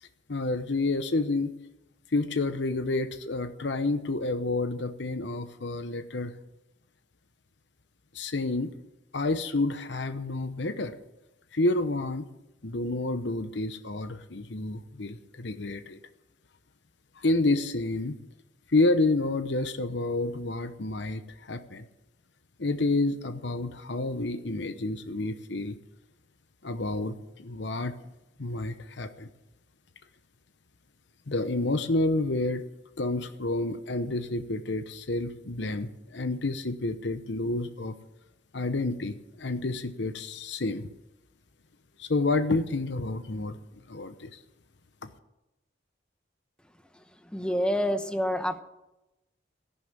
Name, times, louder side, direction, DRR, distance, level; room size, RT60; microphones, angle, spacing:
voice 1, 0.0-1.5 2.1-6.4 8.1-8.7 9.1-11.0 11.5-12.3 12.6-16.0 17.2-18.1 18.7-21.9 22.6-25.8 26.6-28.0 28.4-29.3 31.3-32.6 33.0-37.9 38.5-40.9 42.0-44.4, left 2 dB, 70° left, 10 dB, 0.9 m, -29 dB
voice 2, 47.2-48.6, equal, 5° left, 9 dB, 1.0 m, -27 dB
14.5 x 11.5 x 7.4 m, 0.95 s
head